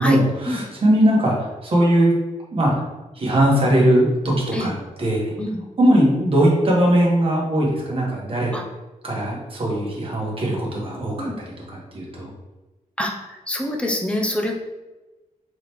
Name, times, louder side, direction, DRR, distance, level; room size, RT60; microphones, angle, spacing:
voice 1, 0.0-2.1 2.5-2.7 3.1-4.7 5.0-5.2 5.8-8.5 9.0-12.3, right 1 dB, 40° right, -3 dB, 1.2 m, -20 dB
voice 2, 13.0-14.6, left 1 dB, 10° left, 0 dB, 0.6 m, -25 dB
3.8 x 3.4 x 3.0 m, 1.1 s
wide cardioid pair, 140°, 14 cm